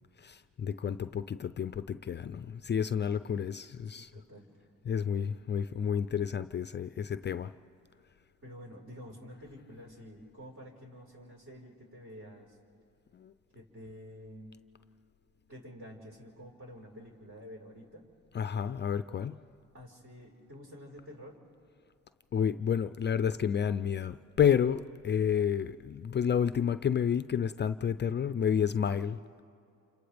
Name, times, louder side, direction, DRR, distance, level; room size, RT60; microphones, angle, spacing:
voice 1, 0.2-4.1 4.9-7.5 13.1-13.3 18.3-19.4 22.3-29.2, left 8 dB, 35° left, 12 dB, 0.5 m, -30 dB
voice 2, 3.9-4.6 8.4-12.6 13.5-14.5 15.5-18.1 19.7-21.4, equal, 45° right, 0 dB, 4.7 m, -49 dB
29.0 x 26.5 x 3.4 m, 2.6 s
cardioid pair, 90°, 30 cm